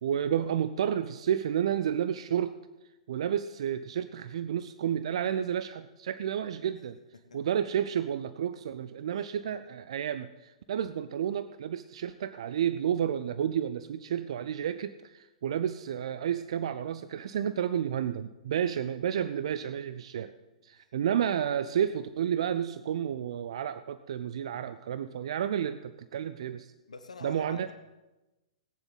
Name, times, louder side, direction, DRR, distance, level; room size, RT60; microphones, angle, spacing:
voice 1, 0.0-2.6 3.1-7.0 7.3-20.3 20.6-26.7 27.2-27.7, right 9 dB, 55° right, 13 dB, 0.5 m, -31 dB
voice 2, 26.9-27.7, left 3 dB, 80° left, 8 dB, 1.2 m, -46 dB
18.5 x 9.8 x 4.1 m, 1.1 s
figure-of-eight pair, 115°, 4 cm